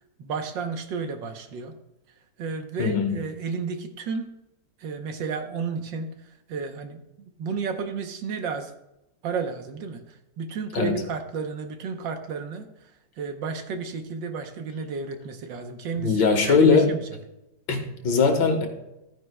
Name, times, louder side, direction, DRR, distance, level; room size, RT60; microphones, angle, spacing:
voice 1, 0.2-1.7 2.4-4.3 4.8-6.1 6.5-7.0 7.4-8.7 9.2-10.0 10.4-12.7 13.2-17.0, right 5 dB, 70° right, 6 dB, 1.6 m, -32 dB
voice 2, 2.8-3.1 10.7-11.0 16.0-16.9 17.7-18.7, left 5 dB, 65° left, 4 dB, 1.9 m, -20 dB
13.5 x 9.7 x 2.2 m, 0.90 s
omnidirectional pair, 2.2 m